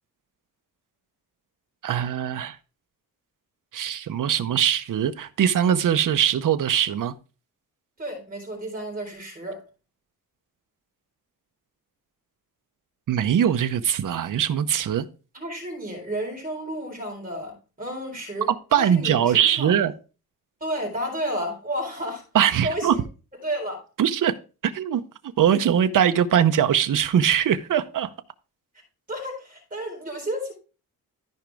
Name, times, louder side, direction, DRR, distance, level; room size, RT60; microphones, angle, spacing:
voice 1, 1.8-2.6 3.7-7.1 13.1-15.1 18.5-19.9 22.3-22.9 24.0-24.3 24.6-25.0 25.4-28.1, right 9 dB, 60° right, 0.8 m, -21 dB
voice 2, 8.0-9.6 15.3-18.5 18.8-19.8 20.6-22.2 22.6-23.0 23.4-23.8 29.1-30.5, right 1 dB, 20° right, 4.1 m, -31 dB
13.5 x 5.1 x 3.5 m
wide cardioid pair, 170°, 37 cm